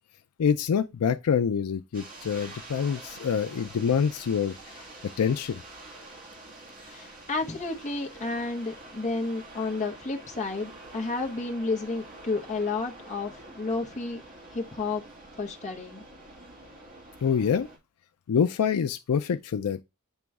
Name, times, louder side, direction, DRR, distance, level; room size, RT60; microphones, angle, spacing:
voice 1, 0.4-4.6 5.2-5.6 17.2-17.7 18.3-19.8, left 7 dB, 80° left, 0.4 m, -26 dB
sound 1, 1.9-17.8, right 2 dB, 40° right, 2.4 m, -47 dB
voice 2, 6.8-14.2 14.5-15.0 15.4-16.0, left 3 dB, 35° left, 1.0 m, -31 dB
9.0 x 3.0 x 3.5 m
head